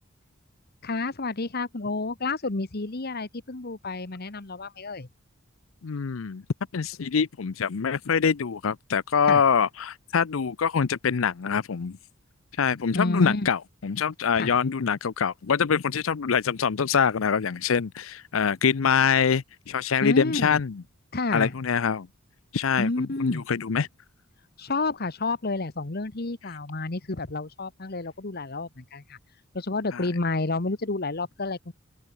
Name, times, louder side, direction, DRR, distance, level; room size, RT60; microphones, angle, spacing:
voice 1, 0.8-5.1 9.3-9.4 12.9-13.5 14.4-14.6 20.0-20.6 21.1-21.5 22.8-23.4 24.6-29.2 29.5-31.7, left 3 dB, 50° left, 1.3 m, -30 dB
voice 2, 5.8-6.4 6.7-12.0 12.6-20.7 21.3-22.1 22.5-23.9 29.9-30.0, left 6 dB, 85° left, 0.6 m, -24 dB
head